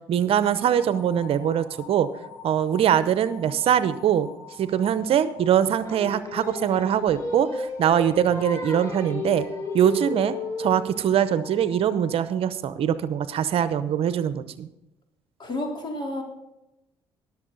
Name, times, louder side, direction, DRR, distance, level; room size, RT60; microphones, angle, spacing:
voice 1, 0.1-2.1 2.4-4.3 4.6-9.5 9.7-14.7, right 9 dB, 60° right, 14 dB, 0.7 m, -23 dB
sound 1, 0.7-12.9, left 5 dB, 90° left, 3.5 m, -46 dB
Singing, 5.8-11.1, left 2 dB, 30° left, 3.7 m, -33 dB
voice 2, 15.4-16.2, left 1 dB, 45° left, 1 dB, 3.7 m, -30 dB
20.5 x 7.1 x 3.9 m, 0.90 s
supercardioid pair, 65°, 11 cm